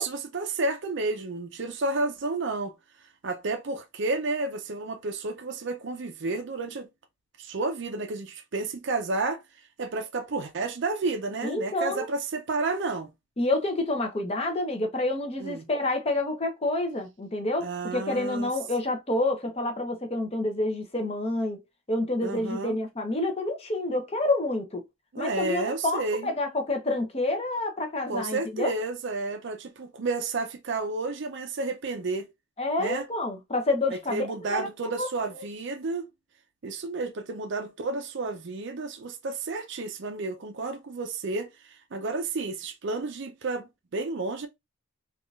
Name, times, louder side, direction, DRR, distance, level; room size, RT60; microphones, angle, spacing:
voice 1, 0.0-2.7 3.2-6.9 7.4-9.4 9.8-13.1 15.4-15.7 17.6-18.5 22.2-22.8 25.1-26.3 28.1-32.3 32.8-33.1 34.1-36.1 36.6-41.5 41.9-44.5, right 3 dB, 55° right, 0.5 m, -31 dB
voice 2, 11.4-12.1 13.4-21.6 21.9-24.8 25.2-28.7 32.6-34.7 35.0-35.1 35.4-35.5, left 2 dB, 30° left, 0.7 m, -28 dB
3.6 x 2.4 x 2.3 m
head